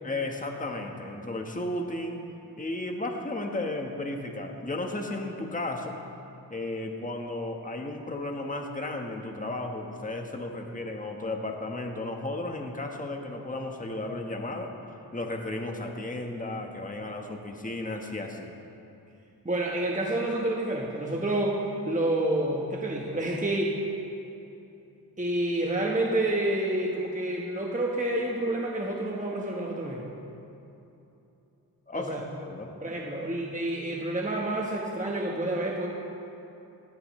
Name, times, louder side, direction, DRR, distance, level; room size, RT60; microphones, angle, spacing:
voice 1, 0.0-2.2 2.6-6.0 6.5-14.7 15.1-18.5 31.9-32.7, left 2 dB, 20° left, 2 dB, 1.3 m, -34 dB
voice 2, 19.4-21.6 21.8-23.7 25.2-30.1 31.9-32.2 32.8-35.9, right 1 dB, 20° right, -2 dB, 1.3 m, -28 dB
19.0 x 12.5 x 3.2 m, 2.9 s
cardioid pair, 75°, 39 cm